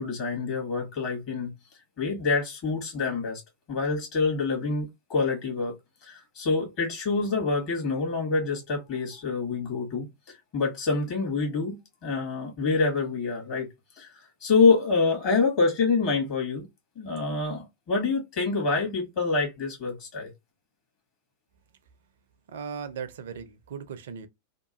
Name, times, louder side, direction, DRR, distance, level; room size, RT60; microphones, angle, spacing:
voice 1, 0.0-1.5 2.0-3.4 3.7-5.7 6.0-13.7 14.0-16.7 16.9-20.3, left 4 dB, 45° left, 1.3 m, -26 dB
voice 2, 22.5-24.3, right 7 dB, 60° right, 0.5 m, -37 dB
2.9 x 2.3 x 2.8 m
figure-of-eight pair, 90°, 0 cm